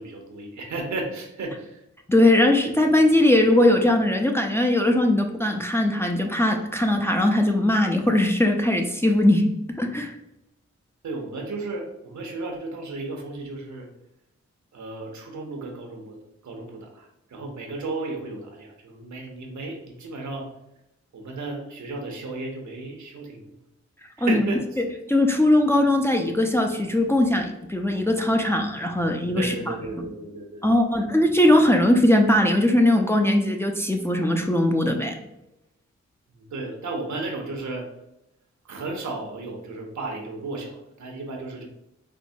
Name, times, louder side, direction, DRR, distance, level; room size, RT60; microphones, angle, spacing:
voice 1, 0.0-1.8 11.0-13.9 14.7-20.5 21.1-23.6 24.2-24.6 29.3-30.6 36.3-37.9 38.6-41.7, right 3 dB, 75° right, 2 dB, 0.8 m, -34 dB
voice 2, 2.1-10.1 24.2-24.4 24.8-29.7 30.6-35.2, left 1 dB, 10° left, 2 dB, 0.4 m, -20 dB
4.5 x 2.1 x 2.6 m, 0.88 s
cardioid pair, 50°, 29 cm